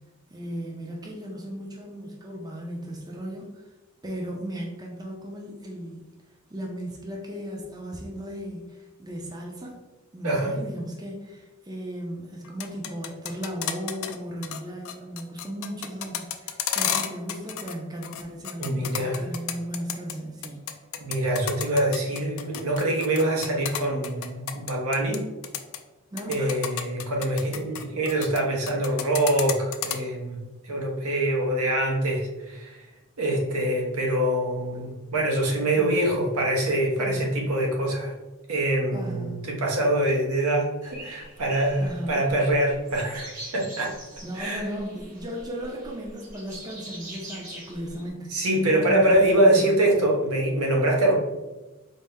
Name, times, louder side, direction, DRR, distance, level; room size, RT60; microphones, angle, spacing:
voice 1, 0.3-3.7 4.0-6.1 6.5-9.8 10.1-20.7 26.1-26.6 34.7-34.9 35.7-36.1 36.9-37.3 38.9-39.4 41.8-42.3 44.2-49.7, equal, 20° right, -1 dB, 0.4 m, -36 dB
voice 2, 10.2-10.6 18.6-19.2 21.0-25.3 26.3-30.4 30.6-32.8 33.2-38.1 38.5-43.9 44.3-44.6 48.3-51.1, right 1 dB, 85° right, 0 dB, 0.8 m, -24 dB
sound 1, 12.4-14.1 14.4-14.6 14.8-17.7 18.0-20.1 20.4-25.2 25.4-25.8 26.2-28.4 28.7-30.0, left 10 dB, 65° left, 0.3 m, -31 dB
sound 2, 40.8-48.1, right 1 dB, 35° right, 0.9 m, -43 dB
4.1 x 2.1 x 3.5 m, 1.1 s
head